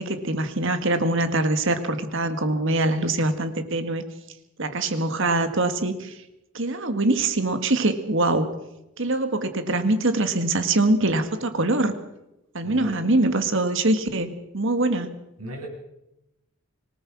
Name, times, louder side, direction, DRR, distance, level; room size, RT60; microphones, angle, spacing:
voice 1, 0.0-4.0 4.6-6.1 6.5-8.5 9.0-11.9 12.5-15.1, right 2 dB, 60° right, 9 dB, 1.9 m, -23 dB
voice 2, 12.6-12.9 15.4-15.7, right 1 dB, 80° right, -1 dB, 8.0 m, -35 dB
26.0 x 18.0 x 6.3 m, 0.90 s
head